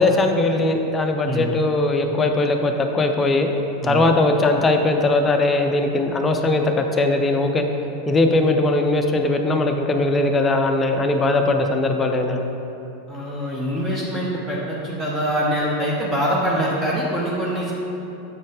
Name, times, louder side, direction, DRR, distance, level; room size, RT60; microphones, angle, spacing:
voice 1, 0.0-3.5 3.8-7.6 8.1-12.4, left 2 dB, 20° left, 4 dB, 0.6 m, -19 dB
voice 2, 13.1-17.7, equal, 10° right, -6 dB, 0.9 m, -24 dB
7.0 x 4.3 x 4.8 m, 2.9 s
figure-of-eight pair, 85°, 0 cm